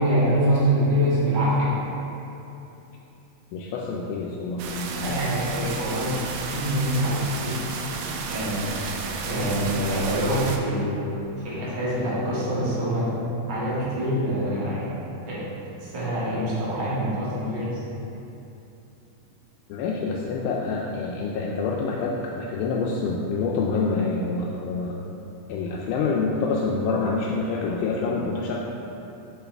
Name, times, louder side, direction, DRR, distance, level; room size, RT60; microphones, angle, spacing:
voice 1, 0.0-1.7 5.0-7.6 8.3-8.7 9.2-11.1 11.4-13.1 13.5-14.9 15.3-15.4 15.8-17.8, equal, 50° right, -9 dB, 1.4 m, -25 dB
voice 2, 3.5-5.2 19.7-24.9 25.5-28.5, left 4 dB, 85° left, -3 dB, 2.3 m, -27 dB
sound 1, 4.6-10.6, right 5 dB, 80° right, 1.8 m, -32 dB
7.0 x 5.1 x 3.4 m, 2.9 s
omnidirectional pair, 4.1 m